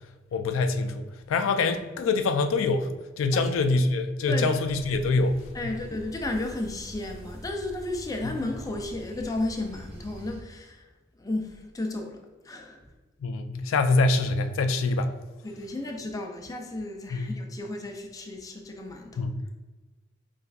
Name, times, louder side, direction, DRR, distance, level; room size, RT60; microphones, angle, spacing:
voice 1, 0.3-1.0 1.3-2.9 3.2-5.4 5.6-5.8 13.2-15.1 17.1-17.4 19.2-19.3, left 3 dB, 90° left, 0.3 m, -24 dB
sound 1, 4.7-10.4, right 1 dB, 30° right, 0.7 m, -44 dB
voice 2, 5.5-10.9 11.2-12.8 15.4-19.3, left 2 dB, 20° left, 0.4 m, -33 dB
5.2 x 3.2 x 2.3 m
head